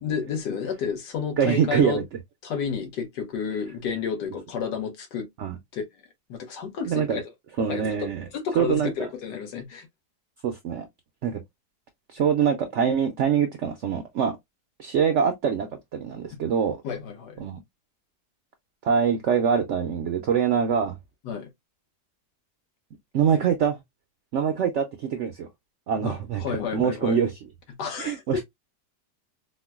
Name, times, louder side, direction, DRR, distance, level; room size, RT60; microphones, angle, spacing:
voice 1, 0.0-2.0 2.4-5.3 5.7-5.8 6.3-7.3 7.7-9.9 16.8-17.4 21.2-21.5 26.0-26.1 26.4-27.2 27.8-28.2, left 6 dB, 85° left, 1.4 m, -31 dB
voice 2, 1.4-2.0 5.4-5.6 6.9-7.2 7.6-8.3 8.6-9.1 10.4-10.9 11.2-11.4 12.1-14.4 14.8-15.7 15.9-16.8 17.4-17.6 18.8-21.0 23.1-23.8 24.3-25.5 25.9-27.3 28.0-28.4, right 7 dB, 75° right, 0.6 m, -24 dB
4.4 x 2.1 x 2.2 m
omnidirectional pair, 1.8 m